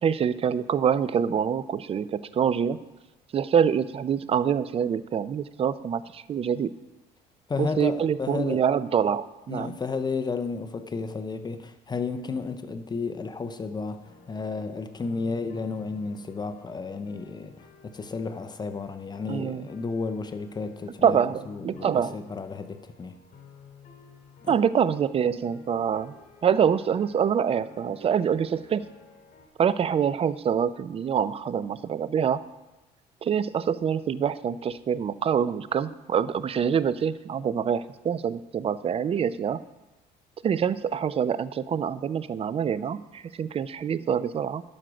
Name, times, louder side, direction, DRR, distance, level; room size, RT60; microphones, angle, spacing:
voice 1, 0.0-2.8 3.3-6.7 7.6-9.7 19.3-19.7 21.0-22.1 24.5-26.1 26.4-28.8 29.6-32.4 33.2-39.6 40.4-44.6, right 8 dB, 35° right, 0.4 m, -25 dB
voice 2, 7.5-8.6 9.5-21.2 21.5-23.2 24.4-24.6, left 4 dB, 25° left, 0.6 m, -32 dB
sound 1, 14.0-29.5, left 4 dB, 55° left, 2.5 m, -53 dB
12.0 x 6.1 x 5.1 m
cardioid pair, 110°, 17 cm